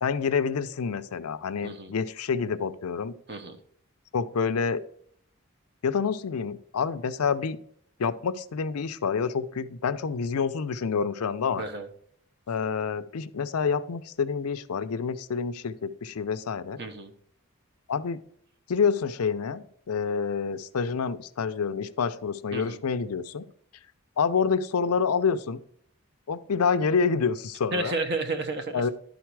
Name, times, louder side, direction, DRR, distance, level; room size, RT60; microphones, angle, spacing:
voice 1, 0.0-3.1 4.1-4.8 5.8-7.6 8.0-11.6 12.5-16.8 17.9-18.2 18.7-23.4 24.2-25.6 26.3-27.9 28.7-28.9, left 5 dB, 90° left, 12 dB, 0.5 m, -27 dB
voice 2, 3.3-3.6 11.6-11.9 16.8-17.1 22.5-22.8 27.7-28.9, right 2 dB, 50° right, 7 dB, 0.9 m, -31 dB
11.5 x 4.0 x 4.6 m, 0.65 s
head